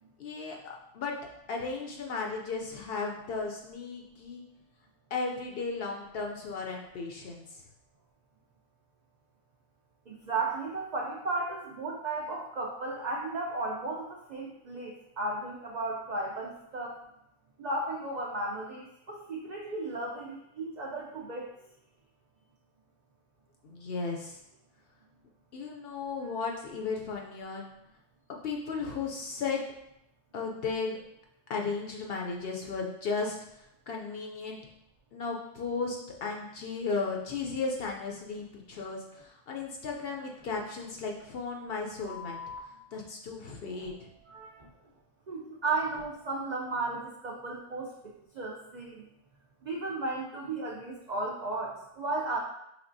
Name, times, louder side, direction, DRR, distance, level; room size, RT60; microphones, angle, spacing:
voice 1, 0.2-1.2 1.5-4.4 5.1-7.6 23.6-24.4 25.5-27.7 28.3-29.6 30.3-31.0 31.5-33.4 33.9-34.6 35.1-42.4 42.9-43.9, left 4 dB, 60° left, 1 dB, 0.6 m, -35 dB
voice 2, 10.1-17.0 17.6-21.5 44.3-44.5 45.3-49.1 49.6-52.4, right 2 dB, 75° right, -1 dB, 0.4 m, -34 dB
sound 1, 38.3-38.4 38.7-38.8 39.1-39.2 39.5-39.6 39.9-40.0 40.3-40.4 40.7-40.8 42.1-42.6 43.7-44.0 44.6-44.7 45.8-46.2, left 5 dB, 40° right, 0.9 m, -46 dB
5.1 x 3.2 x 2.6 m, 0.81 s
omnidirectional pair, 1.3 m